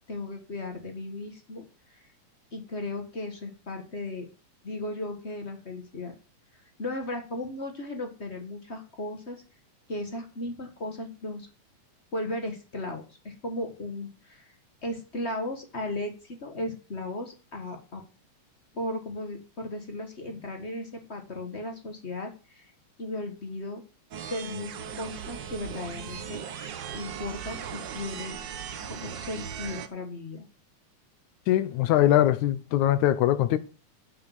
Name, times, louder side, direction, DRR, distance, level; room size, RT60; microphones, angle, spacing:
voice 1, 0.1-2.0 2.5-4.3 4.6-6.2 6.8-9.4 9.9-11.5 12.1-14.5 14.8-18.0 18.7-22.7 23.0-23.8 24.3-26.4 26.9-28.4 28.9-30.4, left 2 dB, 45° left, 0.9 m, -36 dB
sound 1, 24.1-29.9, right 8 dB, 85° right, 1.0 m, -38 dB
voice 2, 31.5-33.6, left 13 dB, 80° left, 2.1 m, -22 dB
9.9 x 6.2 x 7.1 m
omnidirectional pair, 3.5 m